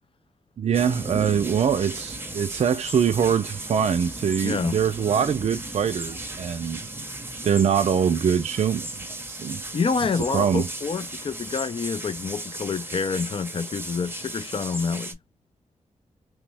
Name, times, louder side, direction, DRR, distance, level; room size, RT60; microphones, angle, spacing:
voice 1, 0.6-6.8 7.4-9.6 10.3-10.7, right 7 dB, 60° right, 0.4 m, -23 dB
sound 1, 0.7-15.1, right 2 dB, 15° right, 0.8 m, -36 dB
voice 2, 4.4-4.8 9.7-15.2, left 5 dB, 45° left, 0.4 m, -27 dB
3.0 x 2.1 x 3.3 m
wide cardioid pair, 85°, 13 cm